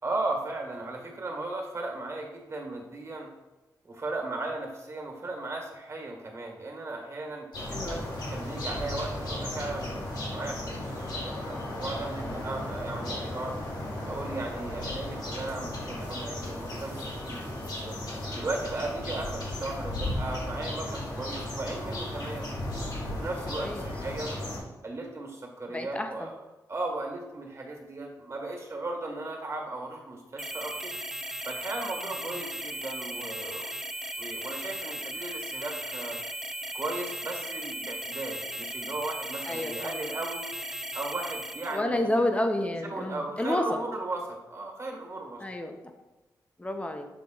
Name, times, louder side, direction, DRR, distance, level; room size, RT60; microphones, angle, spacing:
voice 1, 0.0-3.3 3.8-7.5 7.9-13.6 14.0-22.5 23.1-24.3 24.8-26.4 26.7-31.0 31.4-33.7 34.2-36.2 36.7-40.5 40.9-42.3 42.7-45.4, right 2 dB, 40° right, 1 dB, 1.6 m, -36 dB
sound 1, 7.5-24.6, left 1 dB, 70° left, 1.9 m, -35 dB
voice 2, 7.7-8.1 23.6-23.8 25.7-26.3 39.5-40.0 41.7-43.8 45.4-45.8 46.6-47.1, left 1 dB, 15° left, 5 dB, 0.8 m, -30 dB
sound 2, 30.4-41.8, right 1 dB, 5° right, 0.3 m, -37 dB
7.0 x 3.6 x 3.9 m, 1.1 s
cardioid pair, 65°, 7 cm